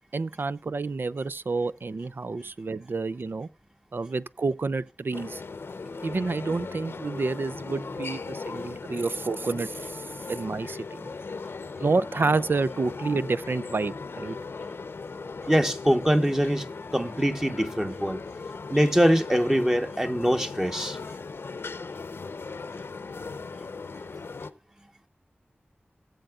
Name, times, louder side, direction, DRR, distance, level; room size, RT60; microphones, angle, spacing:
voice 1, 0.1-3.5 3.9-5.4 6.0-10.0 10.3-11.0 11.8-14.4, right 3 dB, 65° right, 0.5 m, -29 dB
sound 1, 5.1-24.5, left 4 dB, 85° left, 0.8 m, -38 dB
voice 2, 15.5-16.7 16.9-18.2 18.7-21.0, equal, 15° right, 1.2 m, -23 dB
19.0 x 7.9 x 2.4 m
wide cardioid pair, 70°, 4 cm